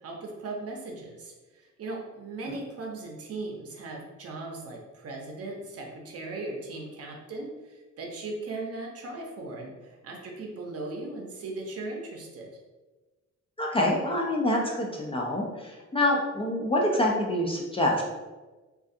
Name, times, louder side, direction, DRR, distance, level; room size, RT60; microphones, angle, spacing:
voice 1, 0.0-12.5, right 2 dB, 50° right, 0 dB, 0.7 m, -38 dB
voice 2, 13.6-18.0, left 1 dB, 20° left, -2 dB, 0.4 m, -26 dB
2.3 x 2.3 x 2.6 m, 1.2 s
cardioid pair, 90°, 30 cm